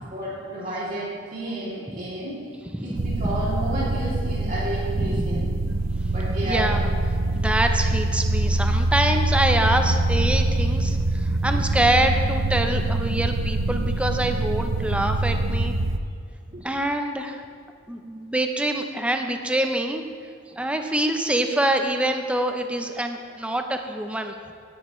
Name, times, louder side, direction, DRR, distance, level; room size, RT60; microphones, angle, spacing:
voice 1, 0.1-2.4 2.8-5.5 6.0-6.8 16.5-16.6, right 1 dB, 40° right, -9 dB, 2.7 m, -31 dB
sound 1, 2.9-16.0, right 2 dB, 70° right, 0.6 m, -24 dB
voice 2, 5.0-5.5 6.4-6.9 7.3-15.8 16.6-17.4 17.9-20.0 20.5-24.5, right 1 dB, 5° right, 5 dB, 0.5 m, -25 dB
16.5 x 11.0 x 3.1 m, 2.3 s
head